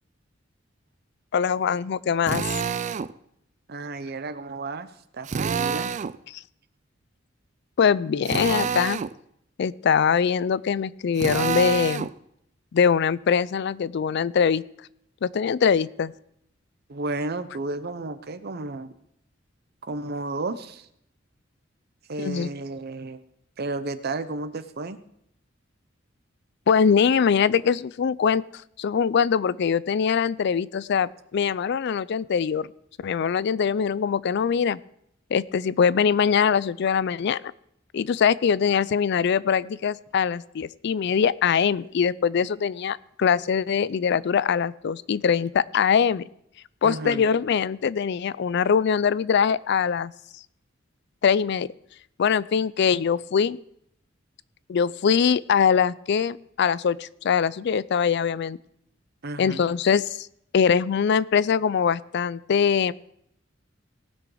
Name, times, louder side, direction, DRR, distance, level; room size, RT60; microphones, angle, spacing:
voice 1, 1.3-2.4 6.3-6.4 7.8-9.0 9.6-12.1 12.7-14.6 15.2-16.1 22.2-22.5 26.7-28.4 28.8-32.7 33.0-34.8 35.3-37.4 37.9-46.2 46.8-50.1 51.2-51.7 52.2-53.6 54.7-58.6 59.4-60.3 60.5-62.9, left 7 dB, 60° left, 20 dB, 0.4 m, -22 dB
Drill, 2.3-3.1 5.2-6.2 8.2-9.1 11.2-12.1, right 6 dB, 40° right, 0.3 m, -27 dB
voice 2, 3.7-4.9 5.1-5.9 16.9-18.9 19.8-20.9 22.1-23.2 23.6-25.0 46.8-47.2 59.2-59.6, right 2 dB, 55° right, 12 dB, 0.8 m, -32 dB
18.5 x 6.2 x 4.9 m, 0.75 s
head